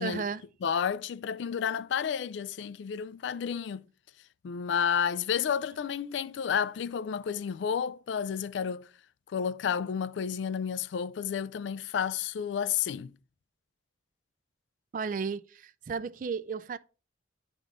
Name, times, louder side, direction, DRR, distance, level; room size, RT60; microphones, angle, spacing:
voice 1, 0.0-0.4 14.9-16.8, right 5 dB, 45° right, 0.3 m, -34 dB
voice 2, 0.6-3.8 4.4-8.9 9.3-13.1, left 7 dB, 75° left, 0.3 m, -31 dB
10.5 x 3.5 x 3.7 m
head